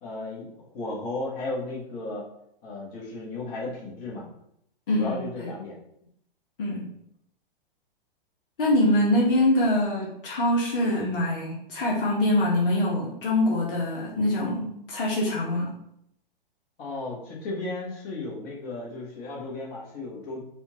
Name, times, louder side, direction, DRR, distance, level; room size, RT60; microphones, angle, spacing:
voice 1, 0.0-2.3 2.6-4.2 4.9-5.7 16.8-20.4, left 2 dB, 35° left, -5 dB, 1.3 m, -34 dB
voice 2, 4.9-5.5 6.6-6.9 8.6-15.7, left 1 dB, 65° left, -4 dB, 1.1 m, -24 dB
4.2 x 2.5 x 2.9 m, 0.75 s
hypercardioid pair, 115°, 29 cm